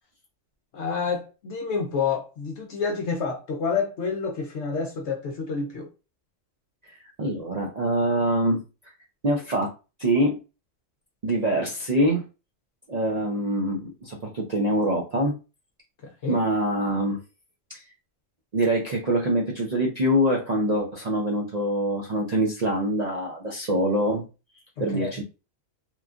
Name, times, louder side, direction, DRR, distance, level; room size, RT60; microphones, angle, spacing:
voice 1, 0.7-5.9 16.0-16.4 24.8-25.2, left 5 dB, 65° left, 0.8 m, -29 dB
voice 2, 7.2-8.6 9.2-9.7 10.0-10.4 11.2-12.2 12.9-15.4 16.3-17.2 17.7-17.8 18.5-24.2 24.8-25.2, right 1 dB, 65° right, 0.4 m, -24 dB
3.0 x 2.3 x 2.4 m
omnidirectional pair, 1.4 m